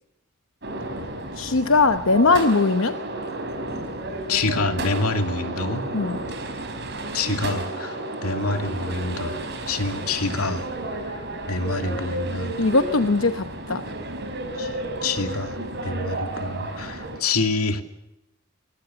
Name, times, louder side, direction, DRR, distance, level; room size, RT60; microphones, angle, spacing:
sound 1, 0.6-17.2, right 2 dB, 50° right, 5.0 m, -32 dB
voice 1, 1.4-3.0 5.9-6.2 12.6-13.8, left 3 dB, 65° left, 8 dB, 0.9 m, -20 dB
voice 2, 4.3-5.8 7.1-9.4 9.7-10.7 11.1-11.2 11.5-12.5 14.6-14.7 15.0-17.8, left 3 dB, 90° left, 6 dB, 2.6 m, -26 dB
25.0 x 21.0 x 7.0 m, 0.91 s
head